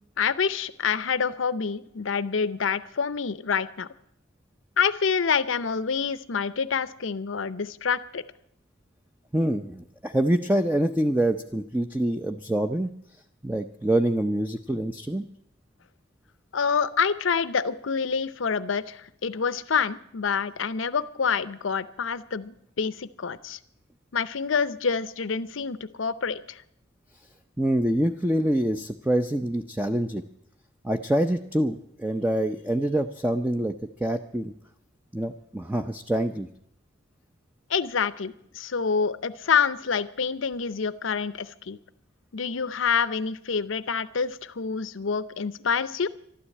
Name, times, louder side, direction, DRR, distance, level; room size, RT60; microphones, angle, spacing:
voice 1, 0.2-3.9 4.8-8.2 16.5-23.6 24.1-26.6 37.7-41.8 42.3-46.1, left 6 dB, 85° left, 15 dB, 0.7 m, -27 dB
voice 2, 9.3-12.9 13.4-15.2 27.6-30.2 30.8-33.7 34.0-34.5 35.1-36.5, right 1 dB, 10° right, 7 dB, 0.6 m, -25 dB
13.0 x 12.0 x 8.5 m, 0.73 s
head